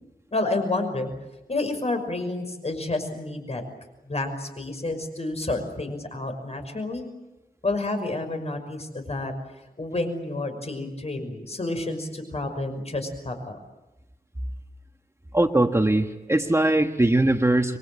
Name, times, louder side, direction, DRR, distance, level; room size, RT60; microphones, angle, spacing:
voice 1, 0.3-1.1 1.5-3.6 4.0-7.1 7.6-9.3 9.8-13.6, left 2 dB, 45° left, 6 dB, 5.9 m, -29 dB
voice 2, 15.3-17.8, right 1 dB, 20° right, 5 dB, 1.4 m, -21 dB
27.5 x 23.0 x 8.8 m, 1.0 s
wide cardioid pair, 85°, 15 cm